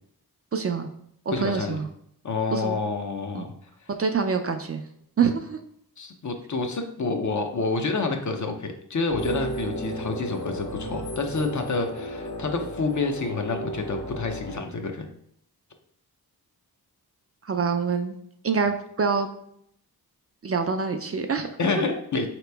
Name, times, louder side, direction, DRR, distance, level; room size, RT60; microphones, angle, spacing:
voice 1, 0.5-0.9 1.3-1.9 2.5-2.8 3.3-3.5 4.0-4.8 5.2-5.6 17.5-18.2 18.4-19.3 20.4-21.5, right 5 dB, 40° right, 5 dB, 0.4 m, -25 dB
voice 2, 1.3-1.8 2.2-3.5 5.2-5.3 6.0-15.1 21.6-22.3, left 4 dB, 50° left, 5 dB, 0.6 m, -28 dB
sound 1, 9.1-14.6, right 1 dB, 85° left, 1.5 m, -34 dB
4.0 x 2.9 x 3.3 m, 0.71 s
wide cardioid pair, 75°, 38 cm